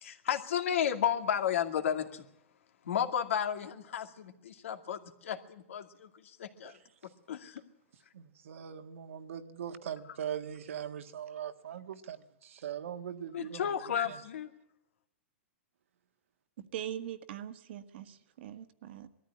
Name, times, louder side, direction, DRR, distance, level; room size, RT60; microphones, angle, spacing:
voice 1, 0.0-2.2 2.8-6.8 7.3-7.6 13.3-14.5, left 9 dB, 75° left, 2.3 m, -33 dB
voice 2, 8.1-13.7, right 9 dB, 75° right, 1.6 m, -41 dB
voice 3, 16.7-19.1, right 10 dB, 55° right, 1.5 m, -41 dB
21.0 x 14.0 x 9.8 m
hypercardioid pair, 165°, 7 cm